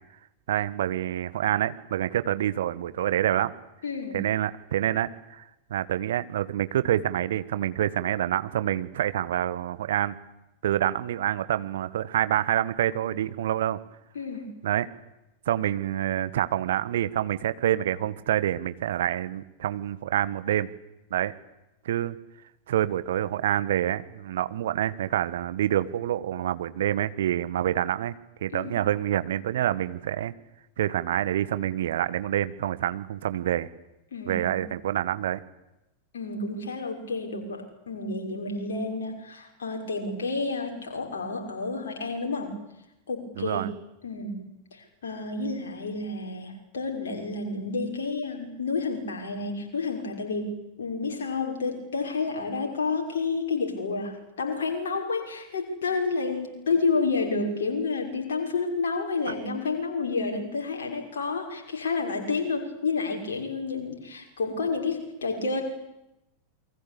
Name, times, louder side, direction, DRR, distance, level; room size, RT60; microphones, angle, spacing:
voice 1, 0.5-3.5 4.1-10.2 10.6-13.8 14.6-14.9 15.4-20.7 21.1-21.3 21.8-22.2 22.7-28.1 28.4-30.3 30.8-33.7 34.3-35.4 43.4-43.7, right 12 dB, 60° right, 14 dB, 1.4 m, -27 dB
voice 2, 3.8-4.2 14.1-14.5 28.5-28.9 34.1-34.7 36.1-42.6 43.1-43.6 44.0-65.6, left 4 dB, 65° left, 1 dB, 5.9 m, -30 dB
29.0 x 23.0 x 8.5 m, 0.90 s
figure-of-eight pair, 90°, 0 cm